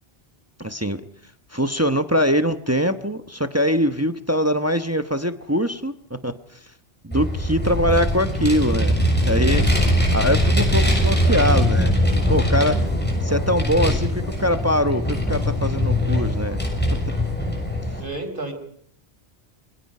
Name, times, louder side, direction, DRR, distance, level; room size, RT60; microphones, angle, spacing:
voice 1, 0.6-1.0 1.5-6.6 7.0-9.0 9.3-9.7 10.1-12.0 12.3-12.8 13.2-14.1 14.4-16.6, equal, 15° right, 8 dB, 1.0 m, -22 dB
Vehicle, 7.1-18.0, left 1 dB, 10° left, 6.8 m, -21 dB
voice 2, 13.3-14.0 18.0-18.5, right 2 dB, 55° right, 5 dB, 4.8 m, -32 dB
27.5 x 24.5 x 5.6 m, 0.63 s
omnidirectional pair, 1.1 m